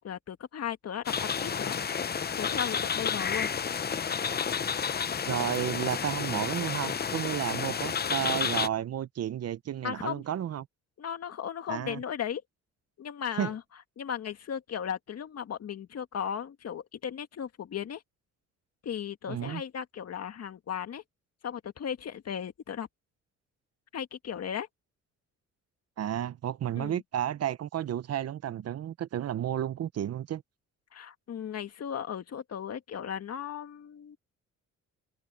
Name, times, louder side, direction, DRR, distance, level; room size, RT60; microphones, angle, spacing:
voice 1, 0.0-1.8 2.4-3.5 9.8-10.2 11.0-12.4 13.0-13.6 14.0-18.0 18.8-21.0 21.4-22.9 23.9-24.7 26.8-27.0 30.9-34.2, left 8 dB, 55° left, 1.9 m, -36 dB
sound 1, 1.1-8.7, left 6 dB, 30° left, 0.8 m, -31 dB
voice 2, 5.2-10.7 11.7-12.0 13.4-13.5 19.3-19.6 26.0-30.4, right 10 dB, 55° right, 0.8 m, -32 dB
open air
cardioid pair, 90°, 30 cm